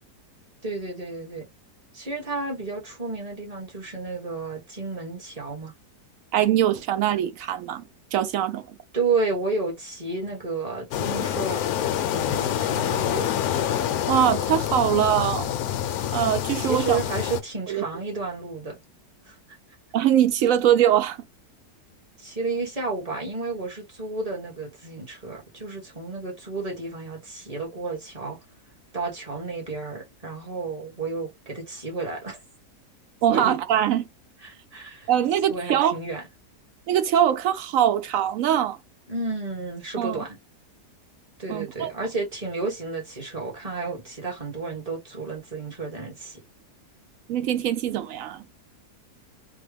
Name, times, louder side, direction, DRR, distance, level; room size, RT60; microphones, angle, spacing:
voice 1, 0.6-1.5 1.9-5.7 8.9-11.6 12.0-13.3 16.6-18.8 19.3-19.4 22.2-28.4 28.9-32.4 33.3-33.6 34.4-35.1 35.5-36.2 39.1-40.4 41.4-46.4, right 3 dB, 25° right, 1.1 m, -31 dB
voice 2, 6.3-8.7 14.1-15.5 16.1-17.0 17.7-17.8 19.9-21.2 33.2-34.1 35.1-36.0 36.9-38.8 40.0-40.2 41.5-41.9 47.3-48.4, right 10 dB, 70° right, 0.8 m, -22 dB
sound 1, 10.9-17.4, left 10 dB, 70° left, 1.0 m, -26 dB
3.6 x 2.2 x 3.3 m
omnidirectional pair, 1.8 m